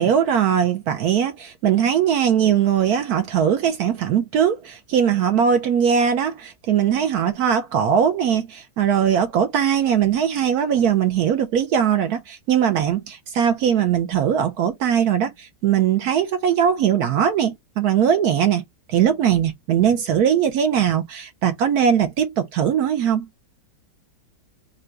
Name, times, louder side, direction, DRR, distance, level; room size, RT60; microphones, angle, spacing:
voice 1, 0.0-18.6 18.9-23.3, right 8 dB, 70° right, 0.9 m, -20 dB
3.8 x 2.2 x 4.4 m
omnidirectional pair, 2.1 m